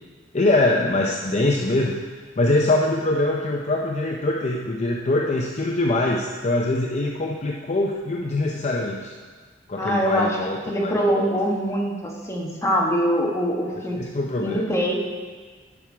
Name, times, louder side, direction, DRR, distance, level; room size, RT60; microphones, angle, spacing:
voice 1, 0.3-2.0 2.4-9.1 9.7-11.3 13.8-14.7, left 2 dB, 35° left, 0 dB, 0.6 m, -23 dB
voice 2, 9.8-10.4 10.7-14.0 14.4-14.9, equal, 15° left, -2 dB, 1.2 m, -23 dB
10.5 x 5.9 x 4.8 m, 1.5 s
head